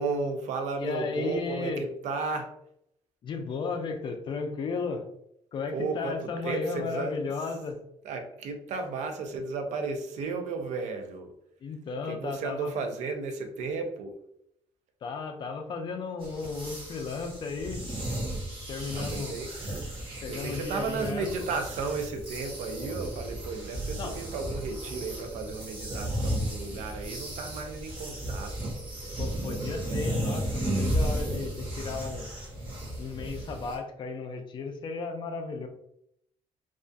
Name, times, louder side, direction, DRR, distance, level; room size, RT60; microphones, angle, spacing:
voice 1, 0.0-2.5 5.7-7.3 8.0-11.4 12.0-14.2 18.9-19.5 20.3-28.7, right 4 dB, 70° right, 5 dB, 0.4 m, -34 dB
voice 2, 0.8-1.8 3.2-5.0 5.5-7.8 11.6-12.7 15.0-17.9 18.7-19.4 20.2-21.3 24.0-24.1 29.2-32.3 33.0-35.7, left 4 dB, 40° left, 5 dB, 0.4 m, -34 dB
sound 1, 16.2-33.8, right 1 dB, 45° right, 0.8 m, -34 dB
2.4 x 2.2 x 2.5 m, 0.74 s
cardioid pair, 145°, 12 cm